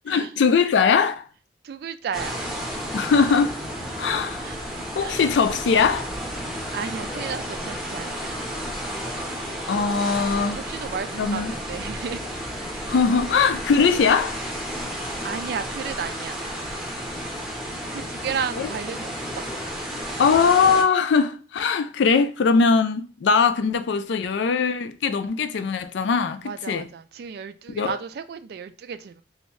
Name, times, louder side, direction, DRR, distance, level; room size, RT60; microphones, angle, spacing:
voice 1, 0.1-1.2 2.9-3.6 3.9-4.5 4.9-6.1 9.7-10.6 11.2-11.5 12.9-14.4 18.6-18.7 20.2-26.9 27.7-28.0, left 5 dB, 75° left, 0.4 m, -21 dB
voice 2, 1.6-2.4 4.4-4.6 5.0-5.2 6.7-8.4 10.5-12.2 12.9-13.0 14.9-16.4 17.9-19.4 26.4-29.2, right 6 dB, 60° right, 0.3 m, -33 dB
sound 1, 2.1-20.8, equal, 5° right, 0.7 m, -32 dB
3.2 x 2.7 x 3.1 m
head